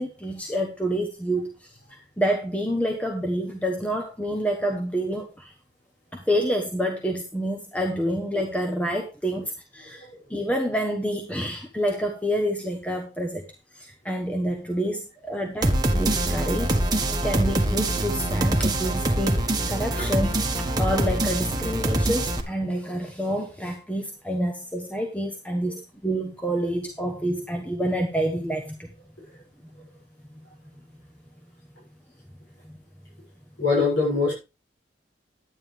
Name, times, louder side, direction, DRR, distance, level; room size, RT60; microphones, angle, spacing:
voice 1, 0.0-1.5 2.2-5.5 6.1-13.4 13.7-20.3 20.8-28.9, equal, 10° left, 3 dB, 1.2 m, -28 dB
sound 1, 15.6-22.4, right 1 dB, 20° right, 1.4 m, -24 dB
voice 2, 33.6-34.3, left 4 dB, 70° left, -4 dB, 7.0 m, -23 dB
11.0 x 9.7 x 3.4 m, 0.29 s
head